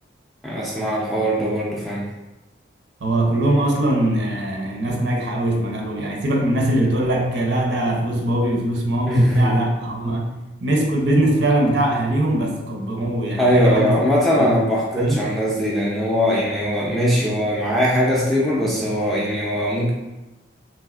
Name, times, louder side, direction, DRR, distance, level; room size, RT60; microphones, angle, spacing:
voice 1, 0.4-2.0 9.1-9.6 13.4-19.9, equal, ahead, -5 dB, 0.4 m, -20 dB
voice 2, 3.0-10.4 10.6-14.0 14.4-14.6 15.0-15.3, right 1 dB, 70° right, 0 dB, 0.5 m, -21 dB
3.3 x 2.4 x 2.3 m, 1.0 s
head